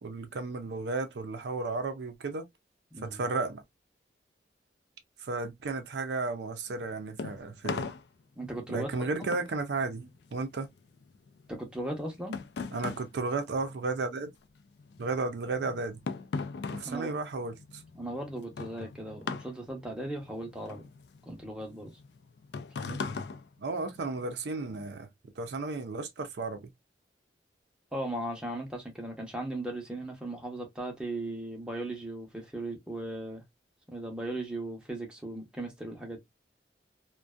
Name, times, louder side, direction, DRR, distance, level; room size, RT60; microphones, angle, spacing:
voice 1, 0.0-2.5 3.0-3.6 5.2-7.9 8.7-10.7 12.7-14.3 15.0-16.0 16.7-17.8 22.9-23.0 23.6-25.1 25.4-26.6, right 3 dB, 70° right, 0.5 m, -33 dB
voice 2, 2.9-3.3 8.4-8.9 11.5-12.4 16.8-17.1 17.9-20.9 21.3-21.9 27.9-33.4 33.9-36.2, right 1 dB, 5° right, 0.6 m, -37 dB
sound 1, 6.7-14.3 14.6-24.3, left 4 dB, 65° left, 0.3 m, -40 dB
2.5 x 2.2 x 2.2 m
head